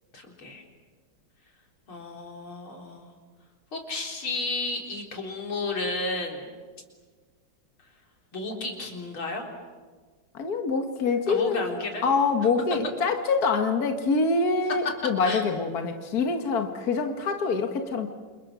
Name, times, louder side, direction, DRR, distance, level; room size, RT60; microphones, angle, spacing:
voice 1, 0.1-0.6 1.9-3.1 3.7-6.5 8.3-9.5 11.3-12.1 15.2-15.4, left 2 dB, 85° left, 1 dB, 4.8 m, -32 dB
voice 2, 10.3-18.1, left 4 dB, 50° left, 5 dB, 2.0 m, -25 dB
29.0 x 28.5 x 6.3 m, 1.4 s
omnidirectional pair, 2.2 m